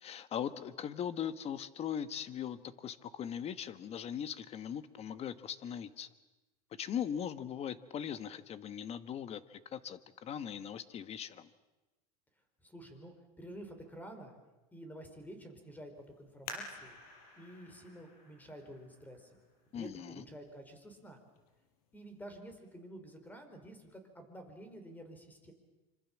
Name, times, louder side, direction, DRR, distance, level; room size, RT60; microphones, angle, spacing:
voice 1, 0.0-6.1 6.8-11.5 19.7-20.2, left 9 dB, 35° left, 13 dB, 1.4 m, -40 dB
voice 2, 12.6-14.4 14.7-15.9 16.2-17.0 17.4-19.4 19.7-21.2 21.9-25.5, right 1 dB, 10° left, 7 dB, 4.7 m, -50 dB
sound 1, 16.5-19.8 20.4-20.5 21.2-21.5 21.9-22.0, left 3 dB, 80° left, 5.6 m, -50 dB
26.5 x 26.0 x 7.4 m, 1.1 s
supercardioid pair, 140°, 19 cm